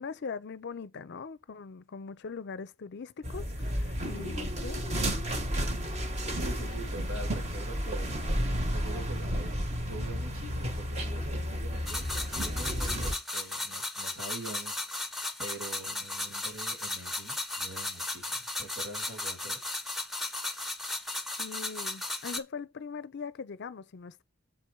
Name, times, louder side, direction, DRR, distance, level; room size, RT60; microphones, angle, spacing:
voice 1, 0.0-5.1 21.4-24.2, left 5 dB, 50° left, 0.5 m, -41 dB
sound 1, 3.2-13.1, equal, 30° right, 1.1 m, -32 dB
voice 2, 6.3-19.6, right 2 dB, 90° right, 2.9 m, -45 dB
sound 2, 11.9-22.4, left 2 dB, ahead, 0.8 m, -35 dB
7.5 x 4.3 x 4.6 m
head